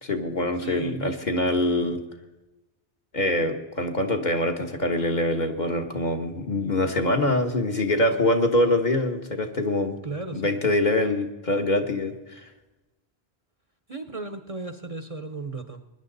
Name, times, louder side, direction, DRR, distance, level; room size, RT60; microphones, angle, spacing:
voice 1, 0.0-2.0 3.1-10.0 10.3-12.4, left 1 dB, 45° left, 4 dB, 1.4 m, -24 dB
voice 2, 0.6-1.2 10.0-10.5 13.9-15.8, right 3 dB, 35° right, 8 dB, 0.9 m, -35 dB
20.5 x 10.5 x 4.0 m, 1.1 s
omnidirectional pair, 1.1 m